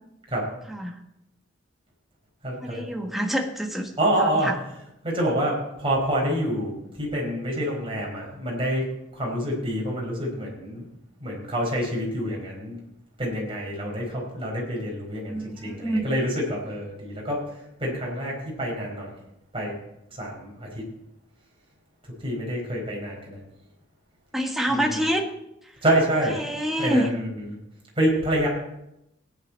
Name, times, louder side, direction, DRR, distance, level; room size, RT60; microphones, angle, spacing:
voice 1, 0.7-1.0 2.6-3.9 4.2-4.6 15.3-16.0 24.3-25.2 26.3-27.1, equal, ahead, 1 dB, 1.4 m, -26 dB
voice 2, 2.4-2.9 4.0-4.5 5.0-8.8 9.1-10.9 11.2-12.8 13.2-19.1 19.5-19.8 20.1-20.8 22.2-23.4 24.7-25.0 25.8-26.4 26.8-27.6 28.0-28.5, right 1 dB, 30° right, -2 dB, 4.6 m, -27 dB
17.0 x 9.9 x 4.3 m, 0.85 s
head